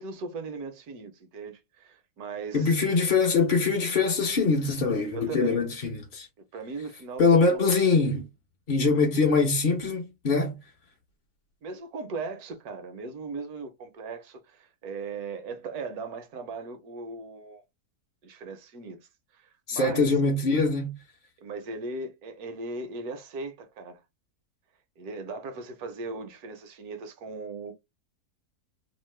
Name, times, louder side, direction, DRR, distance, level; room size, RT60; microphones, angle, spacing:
voice 1, 0.0-2.8 5.1-5.6 6.5-7.6 11.6-17.6 18.2-19.0 19.3-20.1 21.4-24.0 25.0-27.7, right 3 dB, 75° right, 1.2 m, -38 dB
voice 2, 2.5-6.3 7.2-8.3 8.7-10.6 19.7-21.0, left 4 dB, 45° left, 0.6 m, -23 dB
3.0 x 2.0 x 3.1 m
omnidirectional pair, 1.7 m